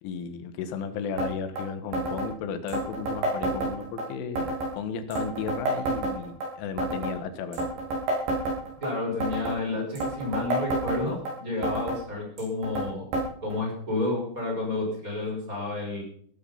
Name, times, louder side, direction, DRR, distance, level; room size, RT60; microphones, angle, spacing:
voice 1, 0.0-7.7, left 6 dB, 90° left, 9 dB, 4.0 m, -34 dB
sound 1, 1.2-1.3 1.6-1.7 1.9-2.3 2.7-4.1 4.4-4.7 5.1-6.5 6.8-7.2 7.5-8.9 9.2-9.6 10.0-11.3 11.6-12.0 12.4-12.9 13.1-13.3 13.5-13.6 14.4-14.5 15.3-15.4, right 2 dB, 70° right, 8.4 m, -29 dB
voice 2, 8.8-13.1 13.4-16.0, left 2 dB, 15° right, 0 dB, 5.8 m, -30 dB
16.0 x 14.0 x 5.7 m, 0.62 s
omnidirectional pair, 5.4 m